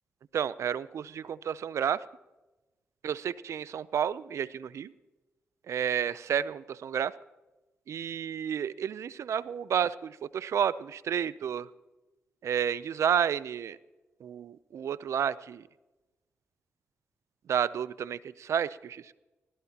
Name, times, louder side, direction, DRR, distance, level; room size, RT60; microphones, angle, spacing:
voice 1, 0.3-2.0 3.0-4.9 5.7-7.1 7.9-11.7 12.4-13.8 14.2-15.6 17.5-19.1, right 8 dB, 75° right, 18 dB, 0.6 m, -31 dB
23.0 x 16.5 x 2.9 m, 1.1 s
supercardioid pair, 45°, 5 cm